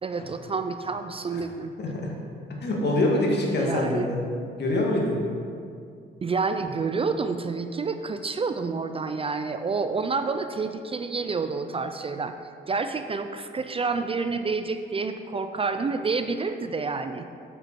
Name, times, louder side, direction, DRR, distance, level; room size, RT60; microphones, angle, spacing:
voice 1, 0.0-1.7 3.5-4.1 6.2-12.3 12.7-17.3, right 4 dB, 30° right, 8 dB, 0.4 m, -29 dB
voice 2, 1.8-2.1 2.6-4.3 4.6-5.2, left 1 dB, 60° left, -1 dB, 2.0 m, -25 dB
7.7 x 7.6 x 4.6 m, 2.3 s
cardioid pair, 90°, 20 cm